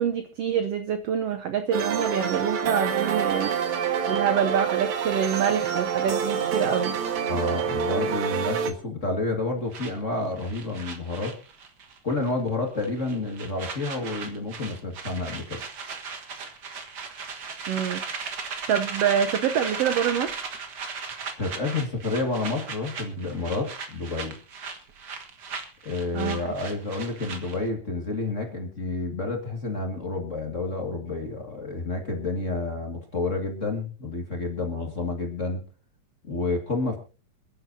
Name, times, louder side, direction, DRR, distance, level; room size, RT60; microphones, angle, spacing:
voice 1, 0.0-3.5 4.1-7.0 17.7-18.0 18.7-20.6 26.1-26.4, right 8 dB, 85° right, 8 dB, 1.3 m, -26 dB
sound 1, 1.7-8.7, right 7 dB, 65° right, 2.6 m, -26 dB
voice 2, 7.3-11.4 12.0-15.6 21.4-24.4 25.8-35.6 36.2-37.0, left 3 dB, 30° left, 2 dB, 1.6 m, -29 dB
sound 2, 9.7-12.0 12.2-12.5 12.8-27.7, right 5 dB, 45° right, 1.4 m, -37 dB
27.5 x 10.0 x 2.7 m, 0.33 s
omnidirectional pair, 3.9 m